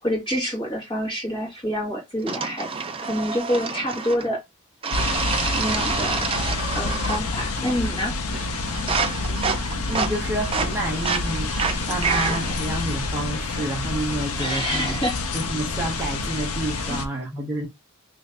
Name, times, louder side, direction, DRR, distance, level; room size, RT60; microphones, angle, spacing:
voice 1, 0.0-2.7 3.0-4.4 5.6-6.2 6.7-8.1 14.4-15.1 16.9-17.0, equal, 20° left, 1.6 m, -27 dB
sound 1, 2.3-4.3 4.8-7.3 7.6-8.0 8.3-12.6, right 5 dB, 25° right, 0.4 m, -28 dB
sound 2, 4.9-17.0, left 3 dB, 70° left, 0.6 m, -28 dB
voice 2, 9.1-11.5 11.9-15.0 15.3-17.7, right 1 dB, 10° right, 0.9 m, -29 dB
3.1 x 2.6 x 3.3 m
head